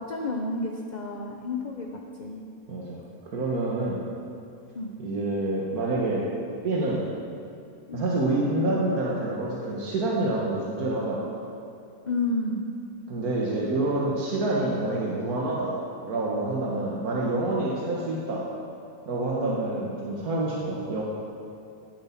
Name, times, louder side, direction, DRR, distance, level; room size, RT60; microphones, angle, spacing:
voice 1, 0.1-1.9 2.2-2.4 4.7-4.9 7.9-8.0 12.1-12.7 19.4-19.6, left 2 dB, 35° left, 0 dB, 0.9 m, -30 dB
voice 2, 2.7-3.0 3.3-4.0 5.0-6.3 6.6-7.1 7.9-11.3 13.1-18.5 19.1-21.0, right 2 dB, 85° right, -4 dB, 2.0 m, -27 dB
17.0 x 7.5 x 5.9 m, 2.5 s
omnidirectional pair, 1.5 m